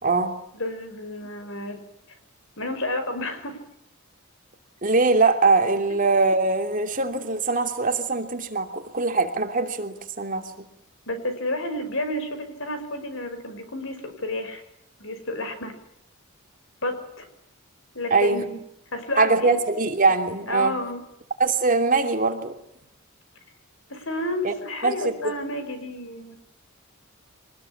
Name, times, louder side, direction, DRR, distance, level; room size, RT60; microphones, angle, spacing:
voice 1, 0.0-0.3 4.8-10.5 18.1-18.4 19.2-20.7 21.4-22.5 24.4-24.5 24.8-25.3, right 3 dB, 40° right, 5 dB, 2.9 m, -22 dB
voice 2, 0.5-1.8 2.6-3.6 11.1-14.6 15.0-15.7 16.8-17.3 17.9-18.6 18.9-19.6 20.5-21.0 23.9-26.4, left 1 dB, 65° left, 8 dB, 5.6 m, -31 dB
24.5 x 20.0 x 8.8 m, 0.77 s
head